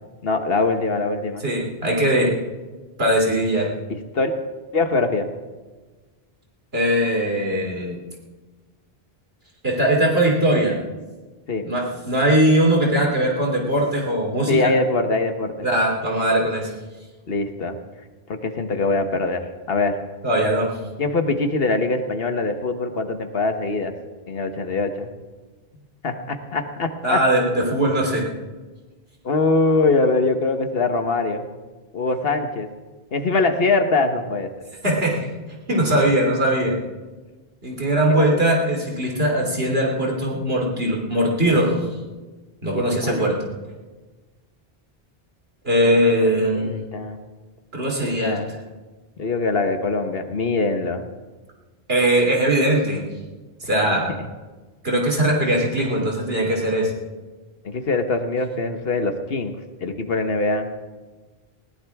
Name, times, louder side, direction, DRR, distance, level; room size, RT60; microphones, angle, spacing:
voice 1, 0.2-1.5 3.9-4.3 4.7-5.3 11.5-11.6 14.5-15.7 17.3-17.8 18.3-19.4 19.7-19.9 21.0-23.9 24.3-25.1 26.0-27.2 29.2-31.5 31.9-32.7 33.1-34.5 37.9-38.5 39.2-39.7 42.7-43.3 45.8-47.2 48.2-48.5 49.2-51.1 57.6-59.5 59.8-60.7, left 3 dB, 70° left, 7 dB, 1.5 m, -23 dB
voice 2, 1.4-2.3 3.0-3.7 6.7-8.0 9.6-10.8 11.6-14.7 15.6-16.7 20.2-20.7 27.0-28.3 34.8-35.1 35.7-36.8 37.6-41.9 42.6-43.5 45.6-46.8 47.7-48.4 51.9-53.1 53.7-54.2 54.8-56.9, right 1 dB, 75° right, -1 dB, 3.3 m, -20 dB
20.0 x 17.5 x 3.6 m, 1.3 s
omnidirectional pair, 1.0 m